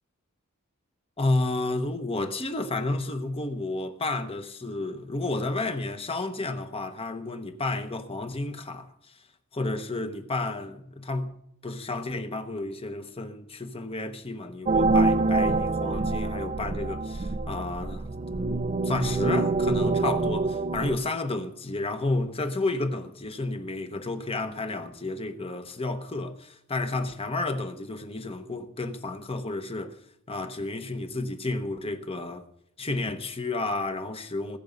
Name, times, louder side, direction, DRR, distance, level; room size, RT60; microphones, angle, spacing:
voice 1, 1.2-9.2 9.5-11.3 11.6-18.1 18.4-20.5 20.7-30.0 30.3-32.5 32.8-34.6, left 2 dB, 25° left, 1.2 m, -31 dB
sound 1, 14.7-21.0, right 3 dB, 30° right, 0.4 m, -26 dB
20.5 x 8.4 x 5.3 m
head